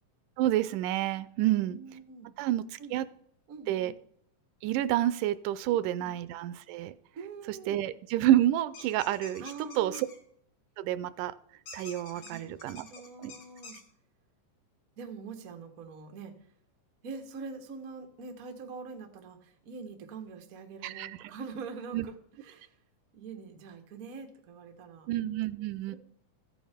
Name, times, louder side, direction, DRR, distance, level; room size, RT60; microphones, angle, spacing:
voice 1, 0.4-1.8 2.4-3.1 3.7-3.9 4.6-6.9 7.5-9.4 9.8-9.9 10.8-11.3 11.7-12.8 13.2-13.3 20.8-21.1 21.9-22.1 25.1-26.0, right 13 dB, 90° right, 15 dB, 2.1 m, -29 dB
voice 2, 1.4-2.4 2.8-3.0 3.5-3.9 7.2-7.8 9.4-10.1 12.1-13.8 15.0-16.3 17.0-22.2 22.4-22.8 23.1-25.1 25.9-26.0, right 5 dB, 60° right, 4 dB, 0.9 m, -44 dB
sound 1, 8.7-10.2 11.7-13.8, left 5 dB, 70° left, 3.5 m, -48 dB
14.0 x 8.7 x 3.5 m, 0.69 s
omnidirectional pair, 3.5 m